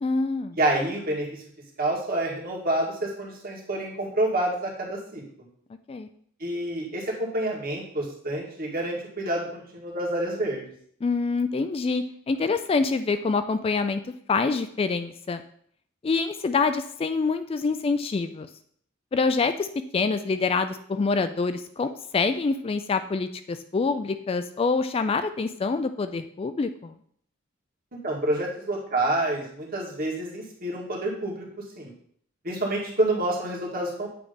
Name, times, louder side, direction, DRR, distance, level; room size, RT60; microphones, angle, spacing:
voice 1, 0.0-0.6 5.9-6.1 11.0-15.4 16.0-18.5 19.1-19.7 19.9-26.9, left 4 dB, 30° left, 10 dB, 0.3 m, -26 dB
voice 2, 0.6-1.4 1.8-5.2 6.4-10.6 28.0-31.5 31.8-31.9 32.4-34.1, right 1 dB, 45° right, -2 dB, 1.9 m, -28 dB
8.5 x 3.3 x 5.1 m, 0.62 s
head